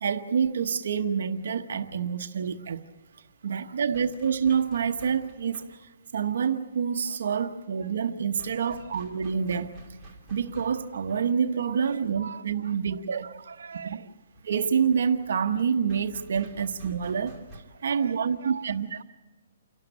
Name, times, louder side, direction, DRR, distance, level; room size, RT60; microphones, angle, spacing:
voice 1, 0.0-2.8 3.4-5.8 6.1-9.8 10.3-13.3 13.8-14.0 14.4-17.4 17.8-18.9, right 7 dB, 60° right, 7 dB, 1.0 m, -27 dB
sound 1, 2.9-17.6, right 2 dB, ahead, 2.6 m, -50 dB
voice 2, 3.4-4.1 7.0-7.4 8.5-8.9 11.7-14.1 17.7-19.0, right 6 dB, 85° right, 13 dB, 0.7 m, -45 dB
28.5 x 12.5 x 9.9 m, 1.3 s
hypercardioid pair, 175°, 0 cm